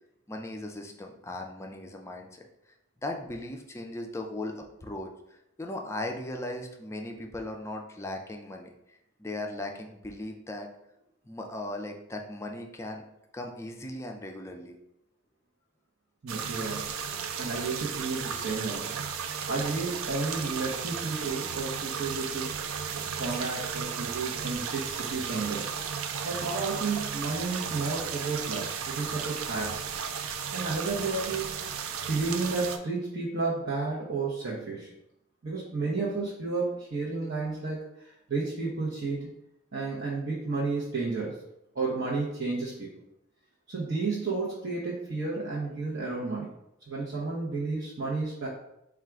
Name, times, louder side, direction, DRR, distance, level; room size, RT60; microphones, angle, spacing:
voice 1, 0.3-2.4 3.0-5.1 5.6-8.7 9.2-10.7 11.3-13.1 13.3-14.8, left 1 dB, 15° left, 2 dB, 0.4 m, -37 dB
voice 2, 16.2-16.9 17.4-22.5 22.9-25.7 26.2-29.8 30.5-31.5 32.1-34.9 35.4-39.3 39.7-41.4 41.7-42.9 43.7-46.5 46.9-48.5, right 3 dB, 55° right, -6 dB, 0.9 m, -32 dB
sound 1, 16.3-32.8, right 7 dB, 80° right, 0.4 m, -34 dB
3.6 x 2.4 x 4.5 m, 0.83 s
head